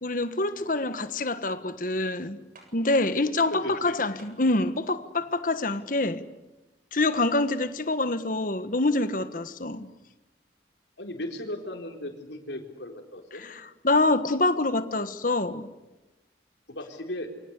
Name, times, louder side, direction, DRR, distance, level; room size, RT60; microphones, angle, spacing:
voice 1, 0.0-2.4 2.7-6.2 6.9-9.9 13.3-15.7, left 2 dB, 50° left, 1.5 m, -26 dB
sound 1, 2.5-2.7 4.2-4.4 5.7-5.8 7.1-7.3, right 3 dB, 50° right, 7.5 m, -52 dB
voice 2, 3.3-4.1 5.7-5.9 11.0-13.5 16.7-17.3, left 1 dB, 90° left, 4.3 m, -37 dB
28.5 x 24.5 x 8.3 m
head